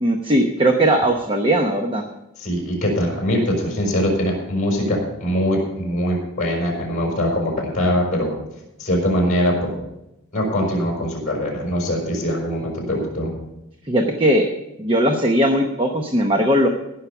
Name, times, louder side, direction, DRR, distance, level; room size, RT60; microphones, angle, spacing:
voice 1, 0.0-2.1 13.9-14.4 14.8-16.7, right 1 dB, 25° right, 3 dB, 0.9 m, -18 dB
voice 2, 2.4-8.3 8.8-9.7 10.3-13.3, equal, 35° left, -2 dB, 5.5 m, -22 dB
17.0 x 6.4 x 7.0 m, 0.90 s
head